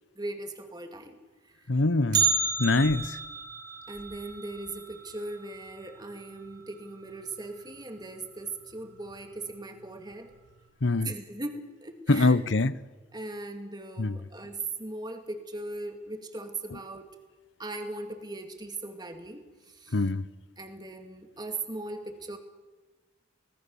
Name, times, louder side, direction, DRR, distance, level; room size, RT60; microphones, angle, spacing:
voice 1, 0.2-1.2 1.4-1.7 3.9-10.3 11.0-12.4 13.1-17.2 17.6-20.0 20.6-22.4, right 2 dB, 20° right, 2.3 m, -39 dB
voice 2, 1.7-2.3 2.6-3.2 10.8-11.1 12.1-12.8 14.0-14.2 19.9-20.3, left 2 dB, 75° left, 0.9 m, -24 dB
Bell, 2.1-6.2 6.5-6.6 7.1-7.2 8.0-8.1 8.8-9.1 9.5-9.6, right 5 dB, 60° right, 5.4 m, -31 dB
25.5 x 18.5 x 7.1 m
head